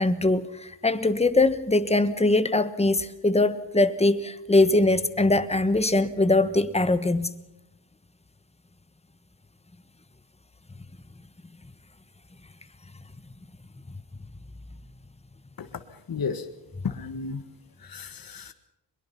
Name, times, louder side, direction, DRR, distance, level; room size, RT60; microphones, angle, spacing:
voice 1, 0.0-7.3, left 2 dB, 15° left, 12 dB, 1.3 m, -22 dB
voice 2, 16.1-16.5 16.8-17.4 17.8-18.5, left 5 dB, 50° left, 8 dB, 1.8 m, -32 dB
22.5 x 22.0 x 5.9 m, 0.92 s
cardioid pair, 95°, 44 cm